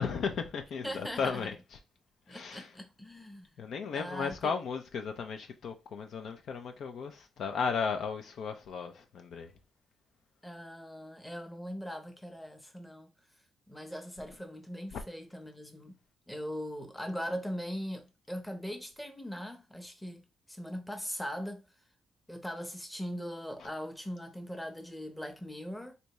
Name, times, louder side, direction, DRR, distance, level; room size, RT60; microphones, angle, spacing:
voice 1, 0.0-1.5 2.3-2.7 3.6-9.5 14.9-15.0 23.6-23.7, left 5 dB, 65° left, 0.5 m, -35 dB
voice 2, 0.8-1.5 2.3-3.5 3.9-4.5 10.4-13.1 13.7-16.0 16.3-21.7 22.3-26.0, equal, 5° left, 0.8 m, -40 dB
3.3 x 2.7 x 3.1 m
cardioid pair, 90°, 0 cm